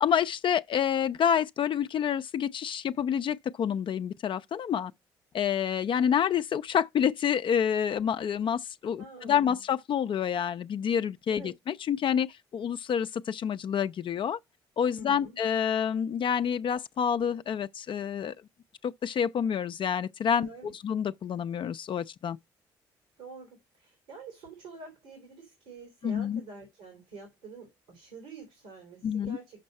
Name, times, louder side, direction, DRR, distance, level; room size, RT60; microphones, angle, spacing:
voice 1, 0.0-4.9 5.3-14.4 14.8-18.3 18.8-22.4 26.0-26.4 29.0-29.4, left 8 dB, 50° left, 0.5 m, -28 dB
voice 2, 9.0-9.6 11.3-11.5 14.9-15.4 20.4-20.7 23.2-29.6, right 4 dB, 85° right, 3.0 m, -47 dB
6.6 x 5.4 x 5.3 m
supercardioid pair, 60°, 11 cm